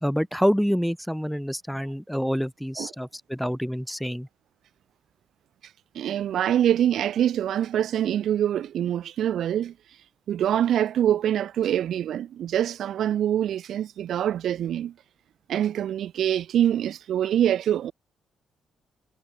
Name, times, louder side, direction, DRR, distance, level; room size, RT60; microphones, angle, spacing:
voice 1, 0.0-4.3, equal, ahead, 1.0 m, -27 dB
voice 2, 6.0-9.7 10.3-14.9 15.5-17.9, right 10 dB, 70° right, 0.4 m, -24 dB
cardioid pair, 90°, 0 cm